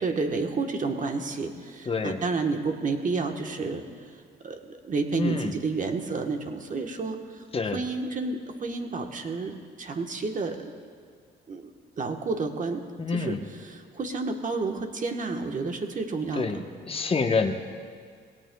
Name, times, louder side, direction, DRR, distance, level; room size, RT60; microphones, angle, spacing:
voice 1, 0.0-4.1 4.4-7.4 7.7-10.7 11.5-12.8 13.1-16.6, right 4 dB, 40° right, 4 dB, 1.2 m, -30 dB
voice 2, 1.9-2.2 5.1-5.5 7.5-7.8 13.0-13.4 16.4-16.6 16.9-17.5, left 4 dB, 30° left, 5 dB, 1.0 m, -26 dB
19.0 x 17.5 x 2.3 m, 2.1 s
cardioid pair, 90°, 20 cm